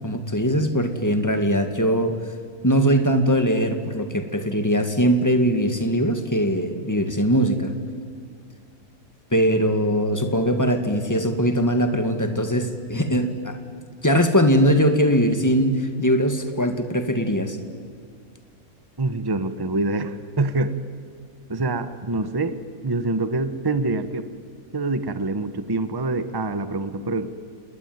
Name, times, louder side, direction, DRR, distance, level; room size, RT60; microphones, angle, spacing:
voice 1, 0.0-2.2 2.6-7.7 9.3-13.6 14.0-17.6, equal, 10° left, 7 dB, 2.0 m, -21 dB
voice 2, 19.0-20.7 21.5-22.6 22.8-24.3 24.7-27.3, right 2 dB, 20° right, 11 dB, 1.0 m, -25 dB
29.0 x 20.0 x 9.6 m, 2.1 s
omnidirectional pair, 1.5 m